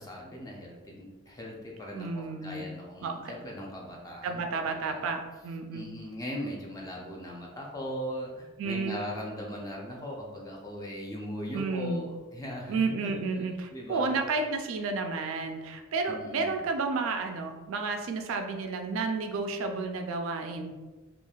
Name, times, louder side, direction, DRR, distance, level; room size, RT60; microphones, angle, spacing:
voice 1, 0.0-5.0 5.7-12.8 13.0-13.1 13.7-14.2 16.1-16.6, equal, 15° left, -2 dB, 0.4 m, -39 dB
voice 2, 1.9-2.6 3.0-3.3 4.2-5.9 8.6-9.1 11.5-12.1 12.7-20.7, right 4 dB, 70° right, 5 dB, 0.3 m, -31 dB
3.0 x 2.4 x 2.3 m, 1.2 s
head